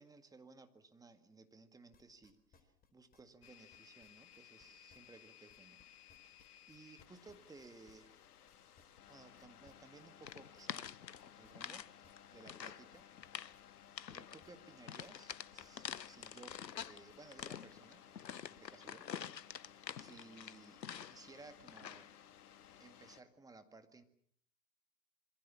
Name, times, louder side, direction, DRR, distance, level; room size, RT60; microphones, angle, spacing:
voice 1, 0.0-5.8 6.7-8.2 9.1-10.9 11.4-11.9 12.3-13.1 14.1-16.6 16.8-20.8 21.1-22.1 22.8-24.0, right 3 dB, 5° right, 9 dB, 1.9 m, -59 dB
sound 1, 1.9-5.8 6.1-15.3 15.6-17.8, left 5 dB, 15° left, 4.3 m, -68 dB
sound 2, 3.4-23.2, left 10 dB, 65° left, 2.2 m, -60 dB
sound 3, 10.2-11.9 12.2-12.8 13.2-13.6 14.0-14.4 14.9-17.0 17.3-21.3 21.7-22.1, left 8 dB, 85° left, 1.0 m, -47 dB
27.0 x 24.5 x 7.3 m, 0.64 s
hypercardioid pair, 115°, 50 cm